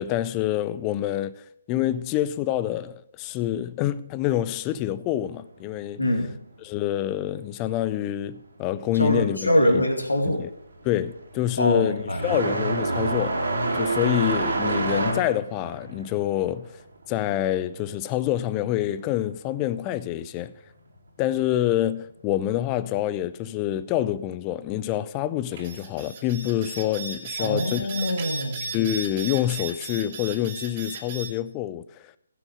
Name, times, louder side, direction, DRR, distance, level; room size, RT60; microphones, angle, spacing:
voice 1, 0.0-6.0 6.6-9.5 10.2-10.5 10.8-13.4 13.7-16.8 17.1-20.5 21.2-27.8 28.7-32.1, left 12 dB, 20° left, 0.4 m, -27 dB
voice 2, 6.0-6.3 8.9-10.4 11.6-12.3 27.4-28.6, left 1 dB, 80° left, 2.4 m, -23 dB
sound 1, 10.2-18.5 18.8-19.9 20.9-21.0 21.8-21.9 23.6-23.7, right 2 dB, 70° right, 3.0 m, -28 dB
sound 2, 25.5-31.3, right 4 dB, 40° right, 2.2 m, -35 dB
15.5 x 6.3 x 5.0 m
figure-of-eight pair, 140°, 0 cm